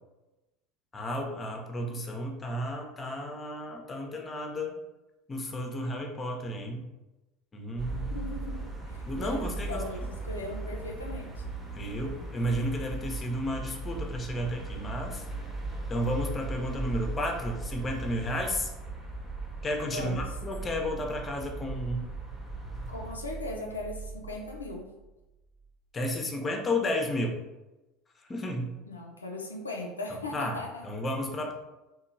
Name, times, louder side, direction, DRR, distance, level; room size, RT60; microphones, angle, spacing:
voice 1, 0.9-4.8 5.3-6.8 7.5-8.2 9.1-9.8 11.7-15.3 15.9-18.7 19.6-22.1 25.9-27.4 28.3-28.7 30.3-31.5, left 1 dB, 25° left, 2 dB, 0.5 m, -32 dB
sound 1, 7.8-23.1, right 2 dB, 15° right, 0.8 m, -38 dB
voice 2, 8.1-11.4 19.9-20.3 22.9-24.9 28.9-30.9, left 2 dB, 85° left, 1 dB, 0.3 m, -38 dB
sound 2, 12.0-25.7 26.0-26.1, right 4 dB, 35° right, 0.4 m, -47 dB
2.9 x 2.2 x 2.5 m, 1.0 s
figure-of-eight pair, 70°, 0 cm